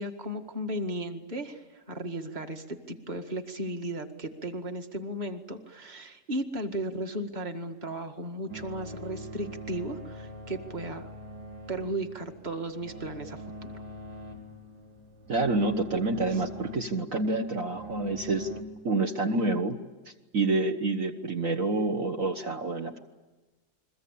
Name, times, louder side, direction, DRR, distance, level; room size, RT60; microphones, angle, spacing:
voice 1, 0.0-11.1 11.7-13.7 16.3-16.4, right 1 dB, 30° right, 6 dB, 2.0 m, -35 dB
sound 1, 8.5-18.6, equal, 90° right, 3.7 m, -43 dB
voice 2, 15.3-18.5 18.8-19.8 20.3-23.0, right 2 dB, 55° right, 4 dB, 1.8 m, -28 dB
29.5 x 22.5 x 8.6 m, 1.2 s
omnidirectional pair, 1.7 m